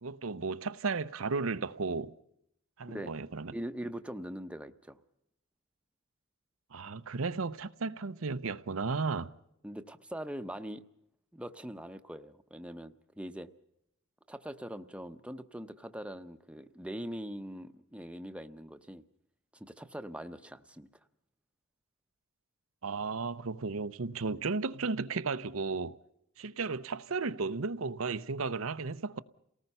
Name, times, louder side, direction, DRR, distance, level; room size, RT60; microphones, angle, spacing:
voice 1, 0.0-2.1 2.8-3.5 6.7-9.3 22.8-26.0 26.4-29.2, right 4 dB, 75° right, 0.8 m, -34 dB
voice 2, 3.5-5.0 9.6-10.8 11.3-13.5 14.3-19.0 19.5-20.9, equal, 5° right, 0.9 m, -42 dB
29.0 x 18.5 x 5.6 m
head